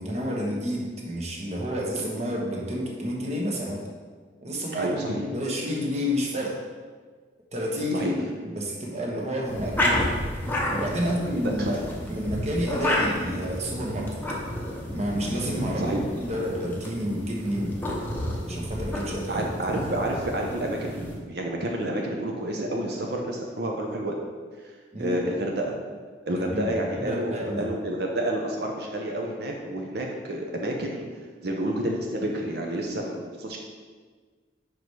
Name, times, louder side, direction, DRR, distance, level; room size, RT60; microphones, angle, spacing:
voice 1, 0.0-3.8 4.4-4.9 5.3-6.6 7.5-10.1 10.7-14.2 14.8-17.8 18.5-19.5 24.9-25.2 26.3-27.7, equal, 35° right, -1 dB, 1.0 m, -30 dB
voice 2, 4.7-5.3 7.9-8.1 11.0-11.1 11.6-11.7 15.8-16.0 19.3-24.1 24.6-24.7 25.0-25.8 26.3-31.1 31.4-33.6, right 1 dB, 55° right, 0 dB, 0.7 m, -29 dB
sound 1, 9.4-21.2, left 1 dB, 10° left, 0.7 m, -31 dB
5.4 x 4.8 x 4.7 m, 1.5 s
head